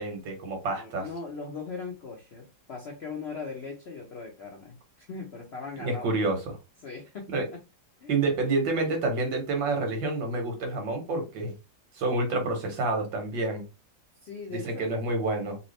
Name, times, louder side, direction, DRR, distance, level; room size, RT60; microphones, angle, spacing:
voice 1, 0.0-1.1 5.8-6.4 7.3-7.4 8.1-11.5 12.0-13.6 14.5-15.6, right 2 dB, 80° right, 1.8 m, -28 dB
voice 2, 0.8-6.2 6.8-7.6 8.0-8.1 14.2-14.9, left 4 dB, 65° left, 0.6 m, -39 dB
3.5 x 2.7 x 3.1 m
omnidirectional pair, 2.0 m